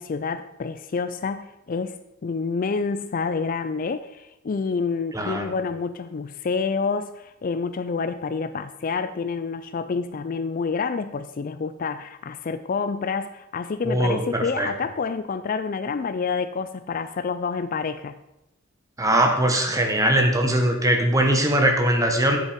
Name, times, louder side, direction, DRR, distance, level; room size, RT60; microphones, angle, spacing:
voice 1, 0.0-2.0 2.2-18.1, left 5 dB, 40° left, 11 dB, 0.4 m, -28 dB
voice 2, 5.1-5.5 13.8-14.7 19.0-22.4, right 1 dB, 15° right, 3 dB, 1.3 m, -21 dB
8.2 x 7.6 x 5.2 m, 0.93 s
head